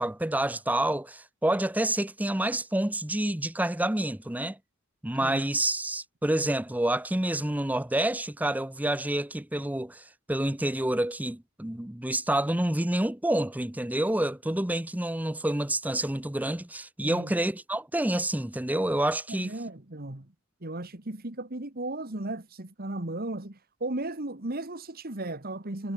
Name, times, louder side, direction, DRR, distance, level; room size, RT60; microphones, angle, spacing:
voice 1, 0.0-4.6 5.0-10.0 10.3-19.5, right 1 dB, 5° right, 0.7 m, -28 dB
voice 2, 17.0-17.3 19.3-20.3 20.6-25.9, right 2 dB, 45° right, 2.0 m, -35 dB
head